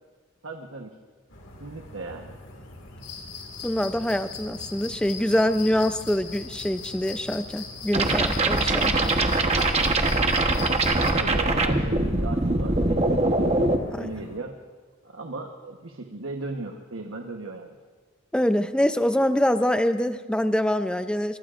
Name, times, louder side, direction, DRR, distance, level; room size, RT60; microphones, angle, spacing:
voice 1, 0.4-0.9 1.6-2.6 10.8-13.6 14.0-14.5 15.0-17.8, right 3 dB, 80° right, 3 dB, 1.2 m, -37 dB
sound 1, 1.3-14.4, left 1 dB, 70° left, 2.0 m, -45 dB
sound 2, 3.0-11.1, left 6 dB, 50° left, 3.5 m, -40 dB
voice 2, 3.6-9.1 13.9-14.1 18.3-21.4, left 1 dB, 5° left, 10 dB, 0.5 m, -25 dB
sound 3, 7.9-13.8, right 2 dB, 30° right, 1.1 m, -22 dB
24.5 x 23.5 x 2.5 m, 1.4 s
head